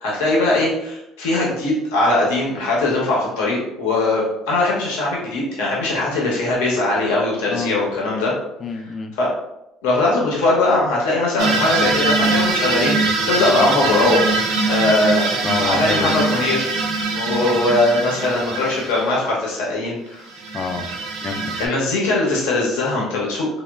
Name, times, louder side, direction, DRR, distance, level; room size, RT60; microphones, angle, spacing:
voice 1, 0.0-8.3 9.2-9.3 9.8-14.2 14.7-15.3 15.6-16.7 17.1-20.3 21.6-23.5, left 2 dB, 85° left, -4 dB, 0.7 m, -20 dB
voice 2, 8.6-9.1 15.4-16.2 20.5-20.9 21.2-21.6, left 5 dB, 40° left, 4 dB, 0.3 m, -27 dB
sound 1, 11.4-19.2 20.3-21.7, right 3 dB, 70° right, 0.4 m, -22 dB
2.9 x 2.1 x 2.2 m, 0.87 s
supercardioid pair, 80°, 0 cm